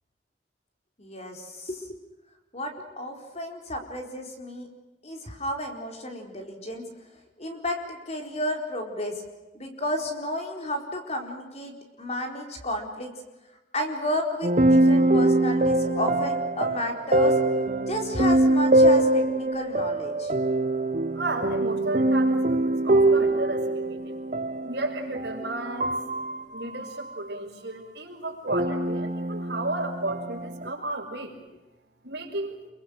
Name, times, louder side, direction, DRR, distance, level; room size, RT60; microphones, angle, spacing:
voice 1, 1.0-2.0 2.5-4.7 5.0-6.9 7.4-9.2 9.5-13.1 13.7-17.4 17.9-20.3, left 1 dB, 35° left, 3 dB, 4.4 m, -32 dB
sound 1, 14.4-27.2 28.5-30.7, right 1 dB, 45° right, 1.6 m, -23 dB
voice 2, 21.1-24.1 24.6-26.0 26.5-31.4 32.0-32.6, right 2 dB, 65° right, 1 dB, 5.9 m, -33 dB
27.0 x 23.5 x 6.5 m, 1.0 s
head